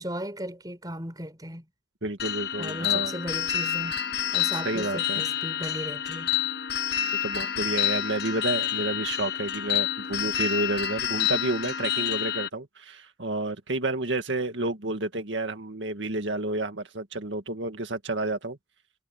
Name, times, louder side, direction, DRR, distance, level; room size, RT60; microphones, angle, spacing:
voice 1, 0.0-1.6 2.6-3.9 4.3-6.3, right 1 dB, 20° right, 6.2 m, -36 dB
voice 2, 2.0-3.2 4.6-5.2 7.2-18.6, right 2 dB, 90° right, 2.0 m, -30 dB
sound 1, 2.2-12.5, left 11 dB, 60° left, 1.2 m, -28 dB
head